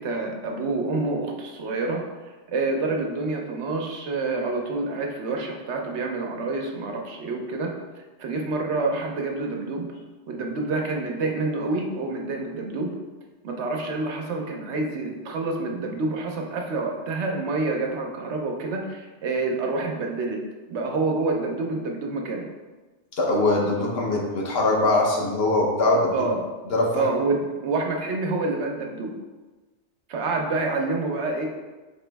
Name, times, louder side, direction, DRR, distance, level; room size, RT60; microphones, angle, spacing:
voice 1, 0.0-2.0 2.5-7.7 7.9-9.9 10.3-12.9 13.4-20.4 20.7-22.5 26.1-26.4 26.9-29.1 30.1-31.5, right 3 dB, 75° right, 1 dB, 1.0 m, -27 dB
voice 2, 23.2-26.3 26.7-27.1, left 2 dB, 60° left, -2 dB, 1.0 m, -22 dB
4.8 x 3.0 x 3.3 m, 1.2 s
omnidirectional pair, 1.2 m